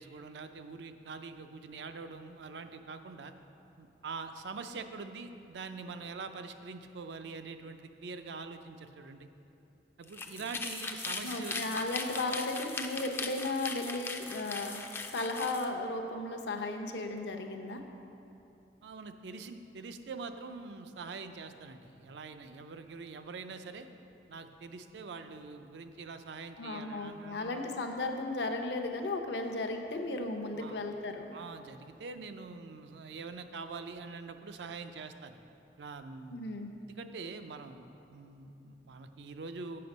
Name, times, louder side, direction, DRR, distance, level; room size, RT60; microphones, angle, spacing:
voice 1, 0.0-3.3 3.8-9.3 10.0-11.8 18.8-23.9 24.3-27.6 30.5-30.8 31.3-35.4 35.8-36.5 36.9-39.8, right 4 dB, 75° right, 8 dB, 0.4 m, -44 dB
sound 1, 10.0-15.7, left 3 dB, 15° left, 0.3 m, -39 dB
voice 2, 11.2-14.8 15.1-17.8 26.6-31.3 36.3-36.7, left 2 dB, 75° left, 4 dB, 0.7 m, -35 dB
7.6 x 5.9 x 5.2 m, 2.8 s
head